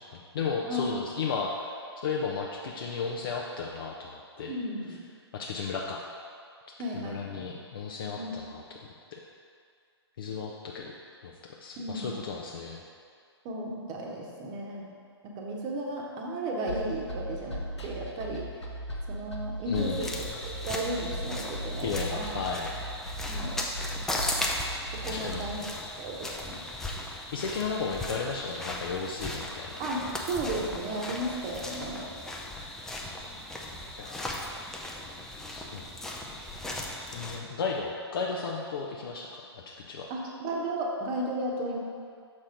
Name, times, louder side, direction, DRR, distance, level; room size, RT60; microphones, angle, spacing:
voice 1, 0.0-1.7 2.0-4.6 5.3-6.0 6.9-8.6 9.1-9.2 10.2-10.9 11.2-11.3 11.6-12.8 19.7-20.0 21.8-22.7 25.1-25.4 27.3-29.8 34.0-34.5 35.5-35.8 37.1-40.1, left 5 dB, 55° left, -1 dB, 0.6 m, -34 dB
voice 2, 4.5-5.0 6.8-7.5 8.2-8.3 11.8-12.2 13.4-14.9 15.3-18.5 19.1-20.1 20.6-22.5 23.3-23.5 25.0-25.6 26.0-26.6 29.8-30.0 30.3-32.1 40.1-41.8, right 1 dB, 25° right, -1 dB, 1.0 m, -34 dB
sound 1, 16.7-25.6, equal, 85° left, 1.1 m, -38 dB
sound 2, 19.7-37.4, left 1 dB, 5° left, 0.4 m, -37 dB
6.2 x 4.2 x 5.0 m, 2.2 s
figure-of-eight pair, 125°, 14 cm